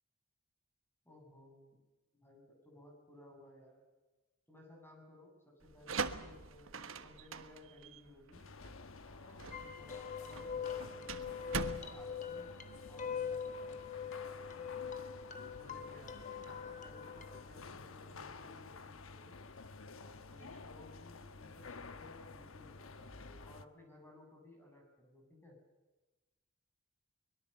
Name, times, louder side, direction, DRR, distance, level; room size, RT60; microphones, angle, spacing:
voice 1, 1.0-1.8 2.1-3.8 4.5-8.4 9.0-12.6 12.9-14.6 15.6-19.4 19.9-25.6, left 1 dB, 10° left, 2 dB, 7.6 m, -59 dB
sound 1, 5.6-13.2, right 4 dB, 70° right, 1.3 m, -43 dB
sound 2, 8.3-23.7, left 4 dB, 75° left, 1.1 m, -52 dB
sound 3, 9.5-17.4, left 7 dB, 40° left, 1.6 m, -43 dB
24.0 x 21.5 x 6.9 m, 1.2 s
head